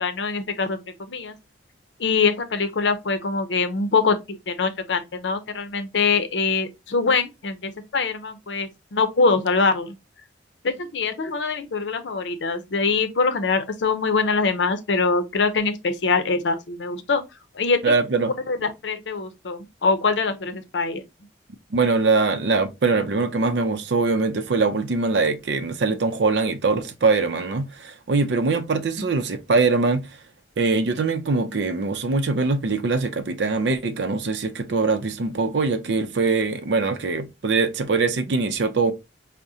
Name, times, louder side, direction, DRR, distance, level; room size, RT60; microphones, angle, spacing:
voice 1, 0.0-1.3 2.0-9.9 10.6-17.2 17.5-17.9 18.5-21.0, left 4 dB, 85° left, 0.6 m, -23 dB
voice 2, 17.8-18.3 21.7-30.1 30.6-38.9, right 4 dB, 70° right, 0.5 m, -22 dB
4.8 x 2.1 x 2.7 m
head